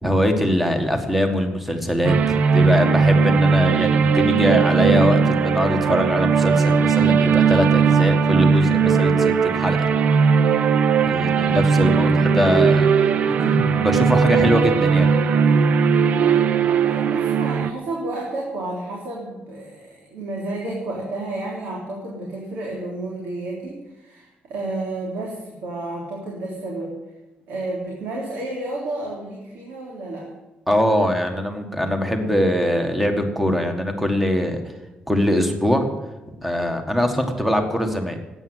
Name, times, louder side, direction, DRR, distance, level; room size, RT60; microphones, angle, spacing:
voice 1, 0.0-9.9 11.0-12.9 13.3-15.1 30.7-34.6 35.1-35.9 36.4-38.2, equal, 5° right, 5 dB, 1.7 m, -22 dB
sound 1, 2.0-17.7, right 5 dB, 55° right, 0.6 m, -18 dB
voice 2, 16.8-27.0 27.5-30.3, right 2 dB, 80° right, -2 dB, 3.4 m, -31 dB
12.5 x 9.0 x 9.5 m, 1.1 s
cardioid pair, 150°, 3 cm